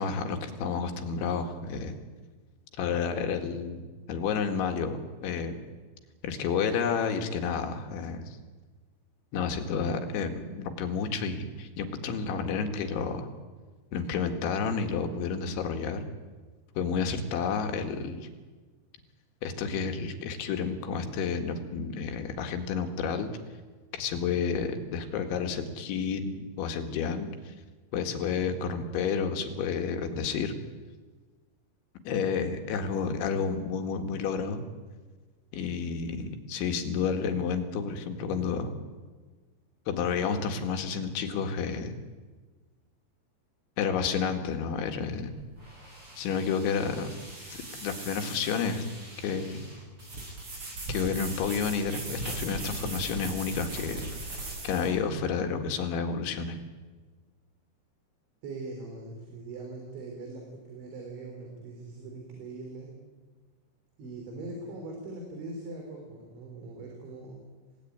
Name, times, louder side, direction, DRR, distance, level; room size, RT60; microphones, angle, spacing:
voice 1, 0.0-1.9 2.8-3.8 4.1-5.6 6.2-8.4 9.3-13.3 13.9-16.1 16.8-18.3 19.4-23.3 23.9-27.5 27.9-30.6 32.1-34.6 35.5-38.7 39.9-42.0 43.8-45.3 46.2-47.2 47.8-48.8 49.2-49.6 50.9-54.0 54.6-56.6, left 6 dB, 90° left, 5 dB, 4.3 m, -30 dB
sound 1, 44.6-55.0, right 2 dB, 30° right, 6.6 m, -40 dB
voice 2, 58.4-63.0 64.0-67.5, right 2 dB, 80° right, 1 dB, 5.8 m, -41 dB
27.0 x 17.5 x 9.5 m, 1.4 s
omnidirectional pair, 5.2 m